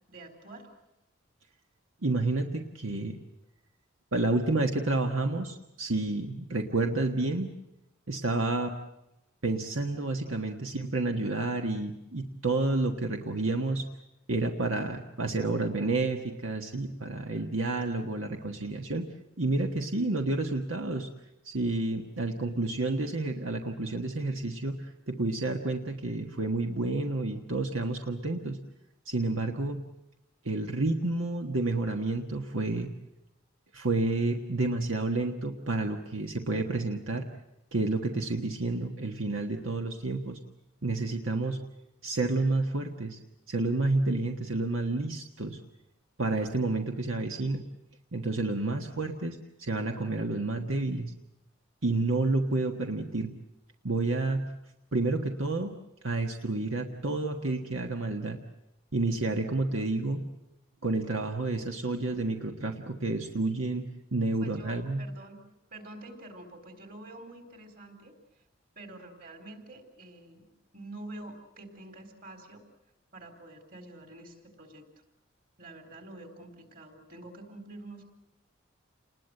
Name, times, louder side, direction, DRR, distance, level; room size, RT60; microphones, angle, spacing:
voice 1, 0.1-0.7 64.4-68.4 68.8-70.5 70.7-72.6 73.1-74.8 75.6-78.1, right 2 dB, 45° right, 6 dB, 4.2 m, -47 dB
voice 2, 2.0-3.2 4.1-7.5 8.1-8.7 9.4-13.8 14.3-19.1 19.4-21.1 21.4-28.6 29.0-29.8 30.4-32.9 33.7-37.3 37.7-40.4 40.8-41.6 42.0-43.2 43.5-45.6 46.2-47.7 48.1-51.1 51.8-53.3 53.8-54.5 54.9-55.7 56.0-58.4 58.9-60.2 60.8-65.1, right 2 dB, 75° right, 4 dB, 1.5 m, -30 dB
28.5 x 20.5 x 7.8 m, 0.88 s
head